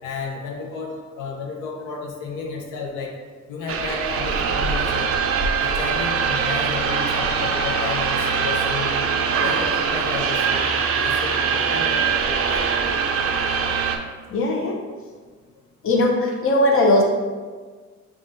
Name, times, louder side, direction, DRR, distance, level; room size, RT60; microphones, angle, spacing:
voice 1, 0.0-3.2 3.5-5.1 5.6-9.0 9.4-10.7 10.9-12.7, left 4 dB, 85° left, -1 dB, 0.7 m, -32 dB
sound 1, 3.7-14.0, right 6 dB, 50° right, 0.4 m, -22 dB
voice 2, 14.3-14.8 15.8-17.0, left 1 dB, 45° left, 0 dB, 0.7 m, -19 dB
5.4 x 2.5 x 2.6 m, 1.5 s
cardioid pair, 90°, 30 cm